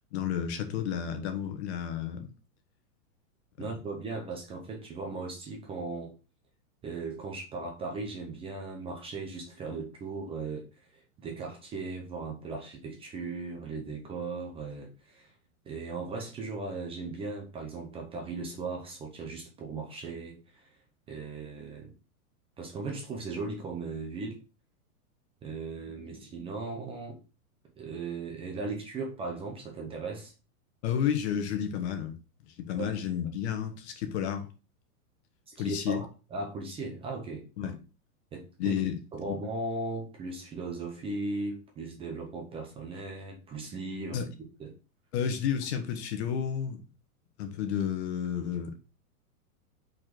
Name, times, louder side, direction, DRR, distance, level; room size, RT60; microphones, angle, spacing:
voice 1, 0.1-2.3 30.8-32.2 32.4-34.5 35.6-36.0 37.6-37.8 38.6-39.4 44.1-44.3 45.1-46.8 47.4-48.8, left 8 dB, 45° left, 1.3 m, -31 dB
voice 2, 3.6-6.1 6.8-10.7 10.9-15.3 15.6-20.7 21.1-21.9 22.6-24.4 25.4-27.2 27.8-30.3 32.8-33.0 35.5-37.7 38.3-38.8 39.1-44.2 44.6-44.7, right 3 dB, 10° right, 0.8 m, -37 dB
5.1 x 4.2 x 4.4 m
supercardioid pair, 155°, 45 cm